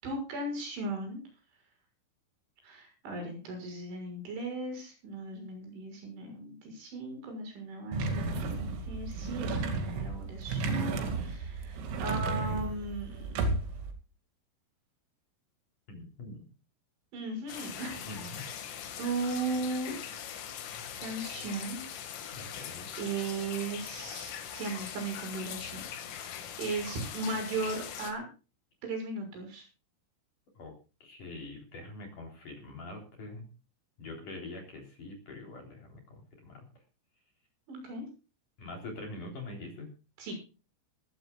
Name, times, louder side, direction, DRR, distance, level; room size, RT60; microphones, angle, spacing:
voice 1, 0.0-1.2 2.6-13.4 17.1-18.0 18.3-18.5 19.0-20.0 21.0-21.8 23.0-25.8 26.1-28.2 28.8-29.6 37.7-38.1 40.2-40.4, right 3 dB, 65° right, 4 dB, 8.6 m, -37 dB
sound 1, 7.9-13.9, right 3 dB, 80° right, 4.9 m, -33 dB
voice 2, 15.9-16.4 18.0-18.4 22.3-22.9 30.6-30.7 31.0-33.4 34.0-36.7 38.6-39.9, left 2 dB, 40° left, 1 dB, 4.8 m, -44 dB
sound 2, 17.5-28.1, left 9 dB, 75° left, 4.5 m, -41 dB
22.0 x 15.5 x 2.4 m, 0.33 s
omnidirectional pair, 5.8 m